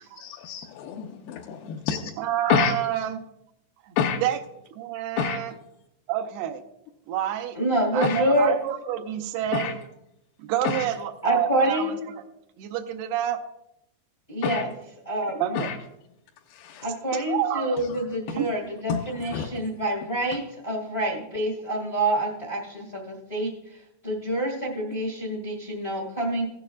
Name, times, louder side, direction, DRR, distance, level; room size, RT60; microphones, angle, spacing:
voice 1, 0.2-2.0 2.5-2.7 4.0-4.2 5.2-5.4 8.0-8.2 9.5-9.7 10.6-10.9 14.4-14.6 15.6-15.8 16.5-16.9 17.9-18.0 18.3-18.4 18.9-19.0 19.3-19.5, left 7 dB, 80° left, 0 dB, 2.5 m, -27 dB
voice 2, 2.2-3.3 3.9-4.0 4.2-4.4 4.7-5.5 6.1-6.6 7.1-7.6 7.9-9.8 10.4-12.3 12.6-13.4 15.4-15.7 17.1-17.8 18.4-18.5, right 11 dB, 85° right, 8 dB, 2.7 m, -28 dB
voice 3, 7.5-8.5 11.2-11.9 14.3-14.7 15.0-15.5 16.8-23.8 24.0-26.4, right 1 dB, 45° left, 0 dB, 0.7 m, -27 dB
16.0 x 9.0 x 2.4 m, 0.84 s
omnidirectional pair, 4.5 m